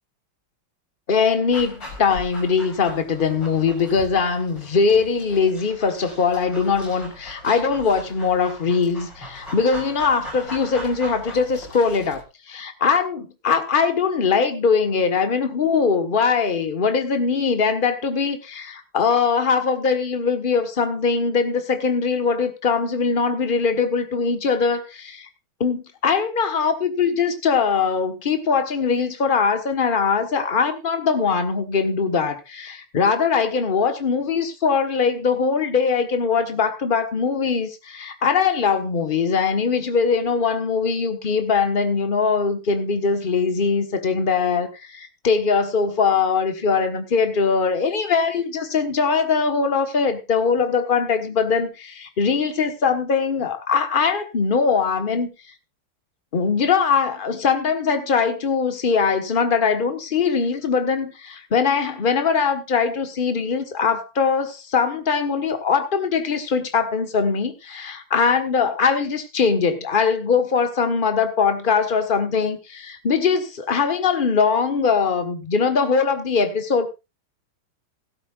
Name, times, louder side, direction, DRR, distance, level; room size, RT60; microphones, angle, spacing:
voice 1, 1.1-25.3 25.6-55.3 56.3-76.9, left 5 dB, 30° left, 7 dB, 1.3 m, -21 dB
Dog, 1.5-12.2, left 1 dB, 60° left, 6.4 m, -39 dB
16.5 x 13.0 x 2.5 m, 0.26 s
omnidirectional pair, 2.2 m